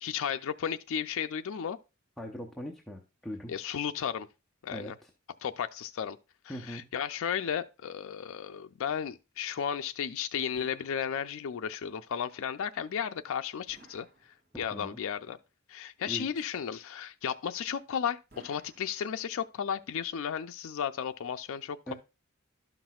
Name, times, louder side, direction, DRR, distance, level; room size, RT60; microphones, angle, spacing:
voice 1, 0.0-1.8 3.5-4.3 4.6-5.0 5.4-6.2 6.4-14.1 14.6-15.4 15.7-21.9, left 8 dB, 65° left, 0.4 m, -34 dB
voice 2, 2.2-3.5 4.7-5.1 6.5-6.9 14.5-15.0 16.1-16.3 21.9-22.0, equal, ahead, 0.7 m, -41 dB
sound 1, 10.6-11.7 13.7-14.9 18.3-19.6, right 2 dB, 50° right, 2.2 m, -58 dB
12.0 x 6.0 x 2.3 m
head